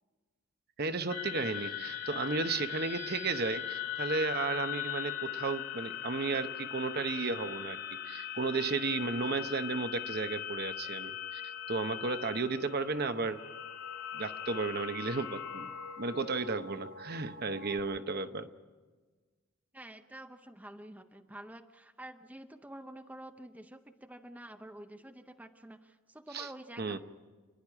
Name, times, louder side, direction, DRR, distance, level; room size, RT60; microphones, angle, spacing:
voice 1, 0.8-7.8 8.0-13.4 14.1-18.5 26.3-26.5 26.8-27.0, right 4 dB, 45° right, 9 dB, 0.9 m, -34 dB
sound 1, 1.1-17.8, left 10 dB, 90° left, 3.9 m, -40 dB
voice 2, 19.7-27.0, right 1 dB, 5° right, 6 dB, 0.7 m, -48 dB
28.5 x 10.5 x 9.7 m, 1.4 s
head